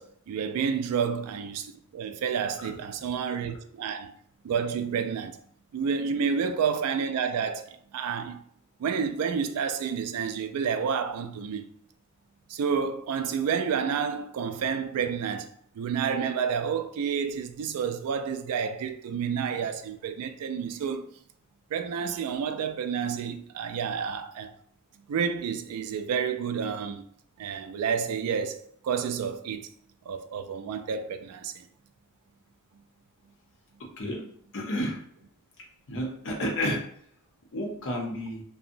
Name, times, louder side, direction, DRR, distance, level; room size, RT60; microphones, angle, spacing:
voice 1, 0.0-4.2 4.4-5.4 5.7-8.4 8.8-11.6 12.5-21.1 21.7-24.5 25.1-27.1 27.4-29.7 30.1-31.7, right 6 dB, 80° right, 0.3 m, -30 dB
voice 2, 34.5-35.0 35.9-36.8 37.5-38.4, equal, 60° left, 0.7 m, -30 dB
2.7 x 2.0 x 2.5 m
head